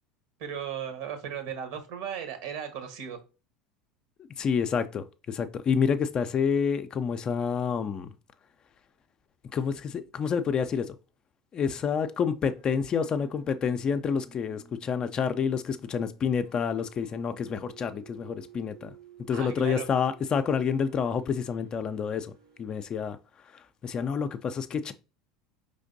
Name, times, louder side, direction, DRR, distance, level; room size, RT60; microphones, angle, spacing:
voice 1, 0.4-3.2 19.3-19.9, right 8 dB, 65° right, 1.2 m, -36 dB
voice 2, 4.4-8.1 9.5-11.0 11.5-18.9 19.3-22.3 22.6-23.2 23.8-24.9, left 6 dB, 35° left, 0.5 m, -28 dB
sound 1, 11.7-22.6, right 8 dB, 80° right, 1.5 m, -54 dB
5.0 x 3.3 x 2.6 m
figure-of-eight pair, 75°, 2 cm